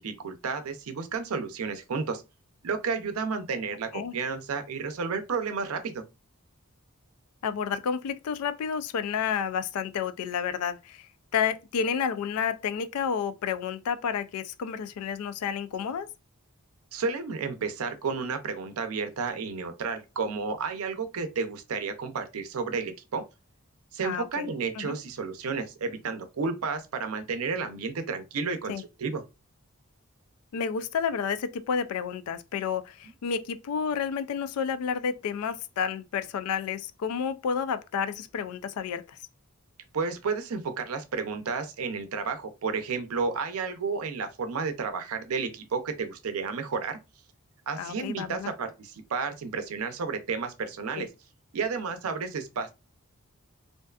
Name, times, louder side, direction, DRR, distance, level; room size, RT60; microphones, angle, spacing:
voice 1, 0.0-2.2 2.6-6.0 16.9-23.2 23.9-29.2 39.9-47.0 47.7-51.1 51.5-52.7, right 5 dB, 80° right, 0.5 m, -32 dB
voice 2, 7.4-11.1 11.3-16.1 24.0-24.5 24.8-25.0 28.7-28.8 30.5-39.2 47.8-48.5 51.0-51.1, left 7 dB, 85° left, 0.3 m, -30 dB
2.5 x 2.3 x 2.2 m
head